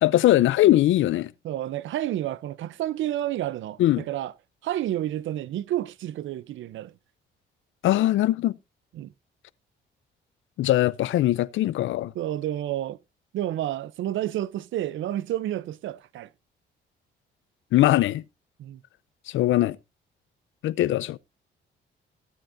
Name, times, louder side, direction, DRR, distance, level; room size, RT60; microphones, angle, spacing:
voice 1, 0.0-1.3 3.8-4.0 7.8-8.6 10.6-12.1 17.7-18.2 19.3-19.8 20.6-21.2, left 14 dB, 75° left, 0.6 m, -21 dB
voice 2, 1.4-4.3 4.6-6.9 8.9-9.1 12.1-13.0 13.3-16.3 18.6-18.8, right 13 dB, 75° right, 0.6 m, -30 dB
15.5 x 9.0 x 2.6 m
cardioid pair, 90°, 20 cm